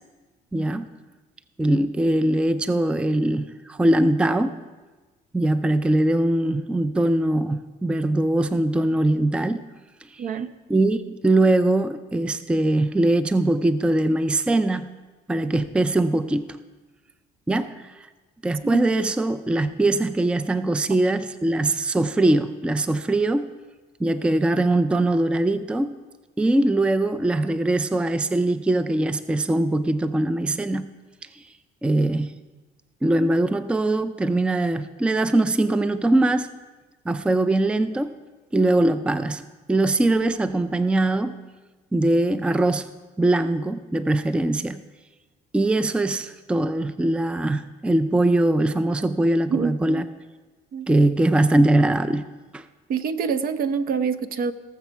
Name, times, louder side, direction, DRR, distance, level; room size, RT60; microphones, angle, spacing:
voice 1, 0.5-0.9 1.6-4.6 5.3-9.6 10.1-10.3 10.7-14.9 15.3-16.6 17.5-17.9 18.4-23.5 24.0-26.0 26.4-30.9 31.3-31.4 31.8-32.3 33.0-36.5 37.1-38.1 38.5-39.4 39.7-41.4 41.9-42.9 43.2-44.8 45.5-50.0 50.9-52.3 52.5-52.6, right 1 dB, 5° right, 12 dB, 0.4 m, -21 dB
voice 2, 10.2-10.5 18.6-18.8 49.5-50.0 50.7-50.9 52.9-54.5, right 6 dB, 60° right, 9 dB, 0.7 m, -26 dB
18.0 x 7.0 x 5.8 m, 1.3 s
cardioid pair, 110°, 17 cm